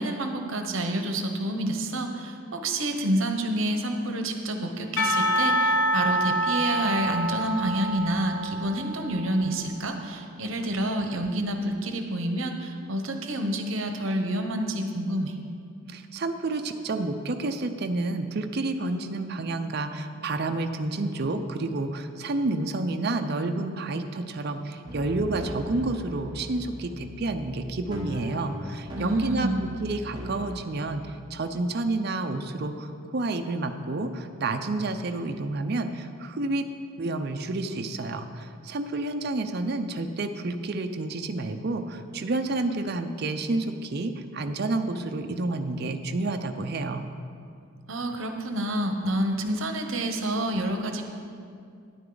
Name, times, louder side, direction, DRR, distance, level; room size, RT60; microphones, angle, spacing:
voice 1, 0.0-15.4 29.0-29.6 47.9-51.0, right 1 dB, 65° right, 5 dB, 0.9 m, -28 dB
Percussion / Church bell, 5.0-9.4, equal, 60° left, 1.1 m, -26 dB
voice 2, 15.9-36.7 37.0-47.1, right 2 dB, 50° right, 7 dB, 0.5 m, -29 dB
sound 1, 24.9-30.7, equal, 20° right, 1.1 m, -39 dB
10.0 x 9.1 x 3.9 m, 2.3 s
head